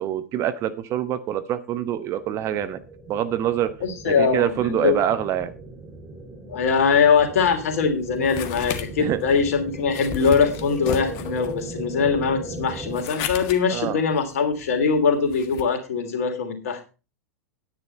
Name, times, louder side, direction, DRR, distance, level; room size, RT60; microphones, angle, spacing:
voice 1, 0.0-2.8 3.1-3.7 4.0-5.5 9.0-9.2 13.7-14.0, right 10 dB, 35° right, 11 dB, 1.1 m, -25 dB
sound 1, 2.2-13.0, right 2 dB, 10° right, 2.2 m, -38 dB
voice 2, 3.8-5.0 6.5-16.8, left 5 dB, 60° left, 6 dB, 3.0 m, -22 dB
sound 2, 7.5-15.6, left 9 dB, 45° left, 1.5 m, -36 dB
10.0 x 9.6 x 4.4 m, 0.32 s
figure-of-eight pair, 95°, 9 cm